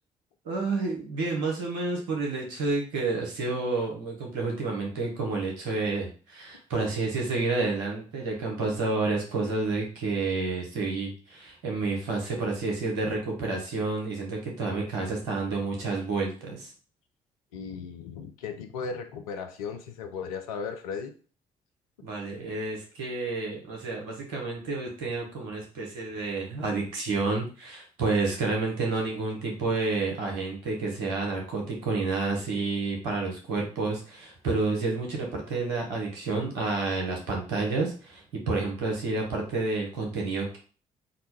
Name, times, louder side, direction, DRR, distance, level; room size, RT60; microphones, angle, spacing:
voice 1, 0.4-16.7 22.0-40.6, right 3 dB, 75° right, 0 dB, 1.2 m, -30 dB
voice 2, 17.5-21.1, left 5 dB, 80° left, 5 dB, 0.5 m, -36 dB
3.8 x 2.3 x 4.5 m, 0.38 s
hypercardioid pair, 45°, 18 cm